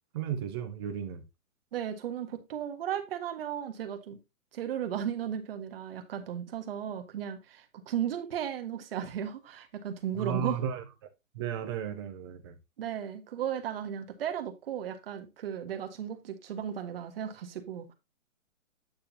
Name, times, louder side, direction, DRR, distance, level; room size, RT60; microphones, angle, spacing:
voice 1, 0.1-1.2 10.2-10.8 11.3-12.5, right 8 dB, 20° right, 0.6 m, -34 dB
voice 2, 1.7-4.2 4.5-10.6 12.8-17.9, right 9 dB, 45° right, 1.7 m, -35 dB
9.3 x 6.7 x 2.8 m
hypercardioid pair, 155°, 41 cm